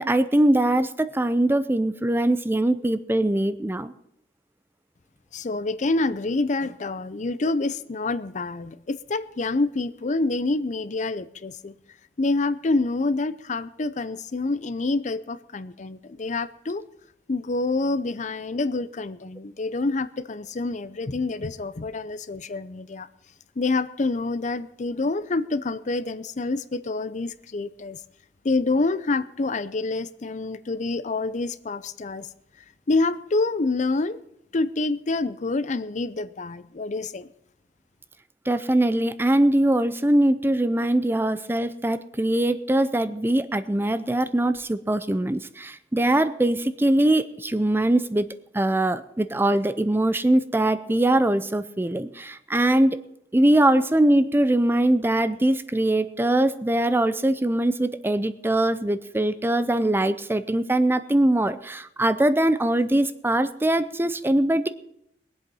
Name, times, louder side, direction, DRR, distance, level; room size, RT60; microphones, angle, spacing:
voice 1, 0.0-3.9 38.5-48.3 48.5-53.0 53.3-64.7, right 1 dB, 15° right, 0.5 m, -22 dB
voice 2, 5.3-11.7 12.2-16.8 17.3-23.1 23.6-28.0 28.4-32.3 32.9-34.2 34.5-37.3, left 3 dB, 45° left, 0.6 m, -27 dB
21.0 x 8.0 x 5.5 m
head